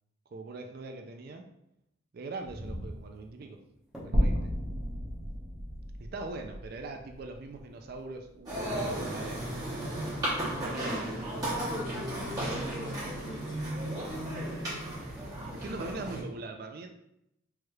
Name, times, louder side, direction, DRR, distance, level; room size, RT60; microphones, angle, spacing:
voice 1, 0.3-1.4 2.1-3.6 4.0-4.5 6.0-9.8 10.5-11.1 15.5-16.9, right 3 dB, 50° right, 5 dB, 0.4 m, -41 dB
sound 1, 2.2-14.2, equal, 5° right, 0.9 m, -51 dB
sound 2, 4.1-8.4, equal, 70° right, 0.8 m, -32 dB
sound 3, 8.5-16.2, right 1 dB, 20° right, 1.4 m, -34 dB
voice 2, 11.6-13.8, left 1 dB, 25° left, -1 dB, 0.6 m, -45 dB
4.6 x 3.1 x 2.3 m, 0.80 s
head